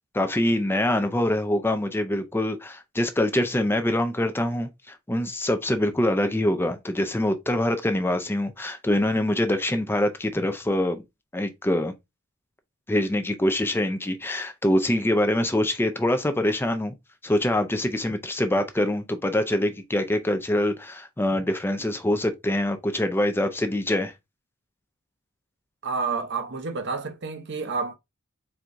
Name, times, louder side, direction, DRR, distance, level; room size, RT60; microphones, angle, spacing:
voice 1, 0.1-11.0 11.3-11.9 12.9-16.9 17.2-24.1, left 1 dB, 10° left, 0.5 m, -24 dB
voice 2, 25.8-28.0, right 4 dB, 60° right, 0.8 m, -29 dB
4.5 x 3.6 x 2.6 m
head